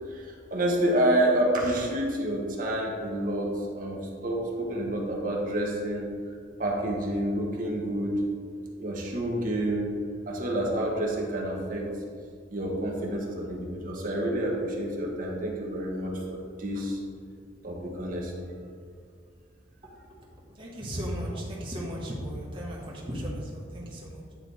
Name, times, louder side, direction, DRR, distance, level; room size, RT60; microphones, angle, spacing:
voice 1, 0.0-6.1 6.6-8.2 8.8-9.9 10.3-11.9 12.5-17.0 17.6-18.5, right 1 dB, 45° right, -1 dB, 1.0 m, -29 dB
voice 2, 20.5-24.3, equal, 25° right, -5 dB, 1.0 m, -35 dB
8.8 x 3.3 x 4.0 m, 2.1 s
head